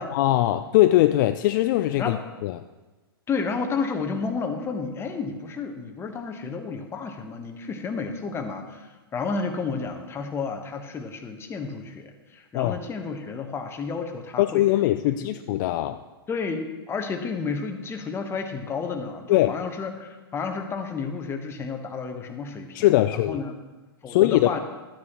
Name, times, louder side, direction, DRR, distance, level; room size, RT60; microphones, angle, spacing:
voice 1, 0.1-2.2 2.4-2.6 12.5-12.7 14.4-16.0 19.3-19.5 22.7-23.4 24.1-24.6, left 15 dB, 50° left, 10 dB, 0.4 m, -21 dB
voice 2, 3.3-14.7 15.1-15.3 16.3-23.6 24.0-24.6, left 5 dB, 20° left, 5 dB, 1.1 m, -31 dB
13.0 x 9.5 x 3.0 m, 1.2 s
hypercardioid pair, 115°, 13 cm